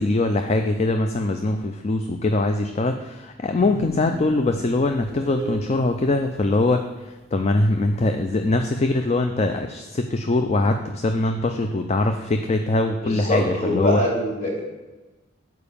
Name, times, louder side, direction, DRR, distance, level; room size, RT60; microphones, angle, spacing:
voice 1, 0.0-14.0, left 2 dB, 35° left, 6 dB, 0.4 m, -22 dB
sound 1, 3.6-5.8, right 1 dB, 20° right, 1.7 m, -34 dB
voice 2, 13.0-14.7, equal, 50° left, -2 dB, 2.7 m, -24 dB
7.0 x 4.7 x 6.8 m, 1.1 s
head